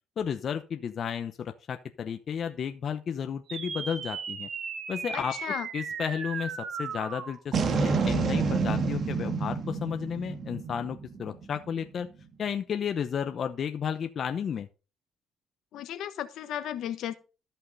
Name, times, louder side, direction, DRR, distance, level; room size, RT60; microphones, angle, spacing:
voice 1, 0.2-4.5 4.9-5.4 5.7-12.1 12.4-14.7, left 7 dB, 50° left, 7 dB, 0.8 m, -33 dB
sound 1, 3.5-12.1, right 5 dB, 50° right, 1.5 m, -31 dB
voice 2, 5.1-5.7 15.7-17.2, left 11 dB, 70° left, 11 dB, 1.1 m, -35 dB
13.5 x 5.7 x 4.0 m, 0.32 s
cardioid pair, 100°, 0 cm